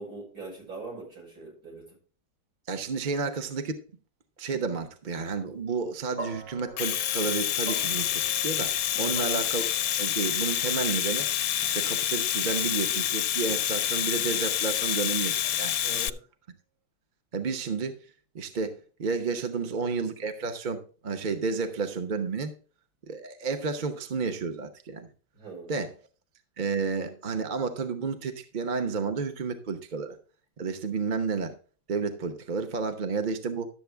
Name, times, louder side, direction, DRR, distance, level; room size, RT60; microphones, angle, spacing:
voice 1, 0.0-2.0 8.9-9.3 15.8-16.2 25.3-25.7, right 3 dB, 60° right, -3 dB, 6.2 m, -42 dB
voice 2, 2.7-3.8 4.4-9.6 10.0-11.3 11.6-15.8 17.3-18.0 18.3-22.5 23.1-25.1 25.7-25.9 26.6-30.2 30.6-31.6 31.9-33.7, right 4 dB, 35° right, 6 dB, 0.9 m, -31 dB
sound 1, 6.2-14.5, right 3 dB, 85° right, 3.0 m, -46 dB
Domestic sounds home sounds, 6.6-16.1, left 11 dB, 70° left, 0.9 m, -28 dB
12.0 x 7.7 x 3.4 m, 0.39 s
omnidirectional pair, 1.8 m